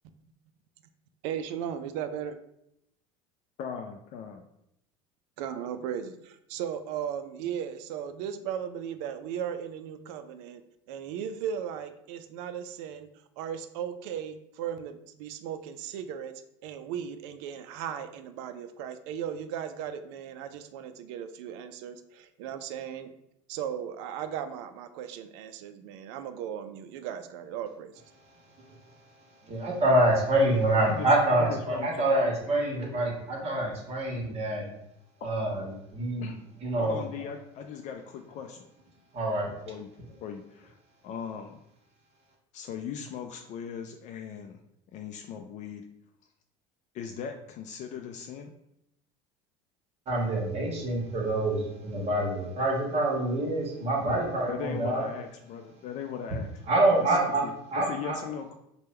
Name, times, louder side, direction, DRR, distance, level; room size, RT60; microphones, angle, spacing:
voice 1, 1.2-2.4 5.4-10.6 10.9-13.1 13.4-16.3 16.6-23.1 23.5-27.9, right 8 dB, 75° right, 10 dB, 0.4 m, -36 dB
voice 2, 3.6-4.4 30.8-31.1 31.4-32.3 35.2-35.3 36.2-36.4 36.8-38.6 39.7-39.9 40.2-40.8 41.0-41.6 42.5-44.6 44.9-45.8 46.9-48.5 54.5-56.5 57.1-57.2 57.4-57.5 57.9-58.5, left 7 dB, 50° left, 4 dB, 0.4 m, -38 dB
voice 3, 29.4-34.6 35.2-36.3 36.6-37.0 39.1-39.5 50.1-55.0 56.7-57.4 57.7-58.2, right 1 dB, 45° right, 0 dB, 1.3 m, -26 dB
3.4 x 2.2 x 4.3 m, 0.80 s
supercardioid pair, 95°, 15 cm